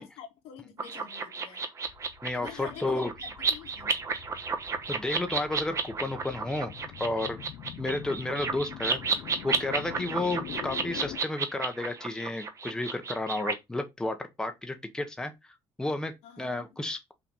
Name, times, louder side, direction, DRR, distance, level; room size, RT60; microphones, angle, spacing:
voice 1, 0.0-1.6 2.3-4.0 9.9-10.4 16.2-16.8, left 9 dB, 85° left, 2.0 m, -47 dB
sound 1, 0.8-13.5, right 5 dB, 30° right, 1.1 m, -32 dB
sound 2, 1.9-11.2, left 13 dB, 65° left, 0.6 m, -44 dB
voice 2, 2.2-3.1 4.9-6.7 7.0-7.4 7.8-15.3 15.8-17.1, left 2 dB, 5° left, 0.9 m, -32 dB
5.8 x 3.9 x 5.4 m
cardioid pair, 155°, 10 cm